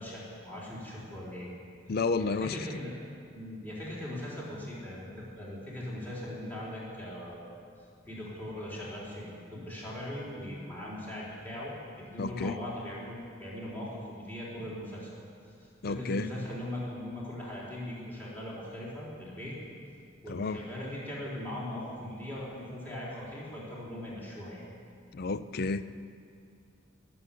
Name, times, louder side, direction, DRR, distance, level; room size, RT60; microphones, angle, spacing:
voice 1, 0.0-1.5 2.2-2.9 3.3-7.5 8.1-11.7 12.0-15.1 15.6-19.5 20.2-24.6, left 1 dB, 10° left, -6 dB, 3.9 m, -40 dB
voice 2, 1.9-2.6 12.2-12.5 15.8-16.3 20.3-20.6 25.1-25.8, left 3 dB, 50° left, 13 dB, 0.5 m, -31 dB
20.5 x 7.1 x 9.2 m, 2.4 s
head